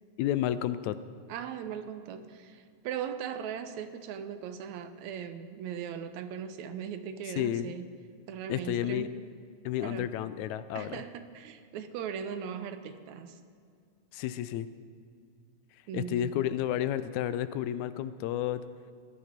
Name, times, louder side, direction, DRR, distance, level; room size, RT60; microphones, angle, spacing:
voice 1, 0.2-1.0 7.4-7.7 8.5-9.1 9.7-11.0 14.1-14.7 15.9-18.6, left 11 dB, 85° left, 14 dB, 1.9 m, -31 dB
voice 2, 1.3-7.9 8.3-9.2 9.8-10.1 10.7-13.4 15.9-16.3, right 8 dB, 80° right, 10 dB, 2.1 m, -39 dB
18.0 x 11.0 x 5.2 m, 2.2 s
omnidirectional pair, 3.3 m